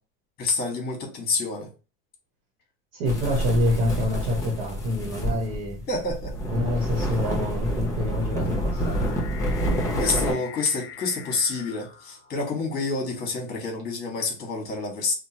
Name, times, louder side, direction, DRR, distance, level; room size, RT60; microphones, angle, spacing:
voice 1, 0.4-1.7 5.9-6.3 10.0-15.1, left 3 dB, 30° left, 1.3 m, -28 dB
voice 2, 2.9-5.8 6.5-9.2, left 1 dB, 70° right, 1.1 m, -26 dB
sound 1, 3.1-10.3, right 1 dB, 10° left, 1.0 m, -28 dB
sound 2, 5.6-12.7, left 8 dB, 55° left, 0.8 m, -46 dB
2.8 x 2.3 x 2.9 m
supercardioid pair, 125°, 30 cm